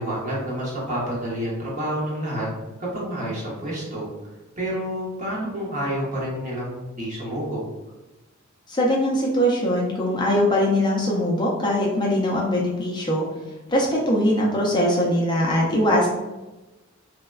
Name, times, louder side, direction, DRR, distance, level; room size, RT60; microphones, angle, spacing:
voice 1, 0.0-2.5 2.8-4.1 4.6-7.6, equal, 40° right, -5 dB, 0.9 m, -29 dB
voice 2, 8.7-13.3 13.7-16.1, equal, 20° left, -3 dB, 0.4 m, -21 dB
3.2 x 2.1 x 2.2 m, 1.1 s
head